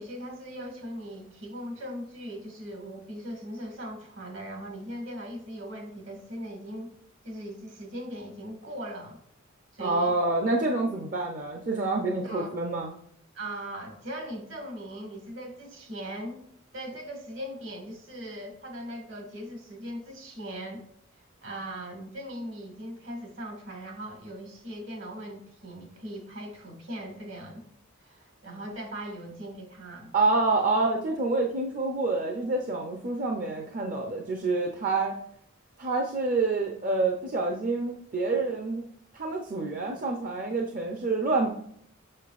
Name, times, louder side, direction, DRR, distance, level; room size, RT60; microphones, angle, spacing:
voice 1, 0.0-6.9 7.2-9.2 9.7-10.1 12.2-12.5 13.3-16.4 16.7-20.8 21.4-27.7 28.0-30.1, equal, 65° right, 2 dB, 1.9 m, -39 dB
voice 2, 9.8-12.9 30.1-35.2 35.8-38.8 39.1-41.5, right 3 dB, 40° right, 1 dB, 0.7 m, -27 dB
6.5 x 6.2 x 2.5 m, 0.68 s
head